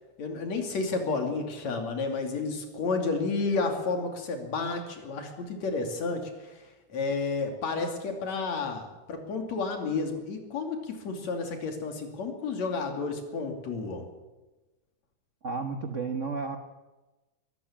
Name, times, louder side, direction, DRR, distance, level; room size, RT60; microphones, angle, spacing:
voice 1, 0.2-6.6 6.9-14.1, left 4 dB, 70° left, 4 dB, 3.9 m, -31 dB
voice 2, 15.4-16.6, right 4 dB, 80° right, 6 dB, 0.6 m, -32 dB
23.0 x 13.5 x 8.7 m, 1.1 s
omnidirectional pair, 3.3 m